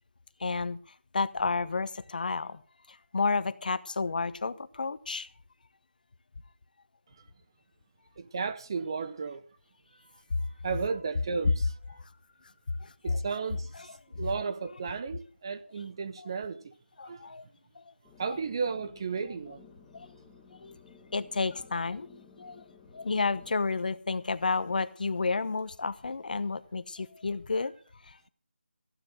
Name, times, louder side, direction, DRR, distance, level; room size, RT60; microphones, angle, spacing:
voice 1, 0.4-2.6 2.9-5.3 12.8-13.2 14.1-14.3 16.2-16.3 17.0-17.5 17.7-17.9 18.3-18.4 19.9-20.1 20.5-20.8 21.1-22.6 22.9-27.7 28.0-28.3, left 4 dB, 45° left, 0.9 m, -31 dB
voice 2, 8.2-9.4 10.4-11.7 13.0-16.7 17.0-17.2 18.2-19.7, right 5 dB, 20° right, 0.6 m, -34 dB
sound 1, 18.0-23.5, left 6 dB, 5° left, 1.0 m, -56 dB
15.0 x 9.8 x 6.4 m
figure-of-eight pair, 170°, 7 cm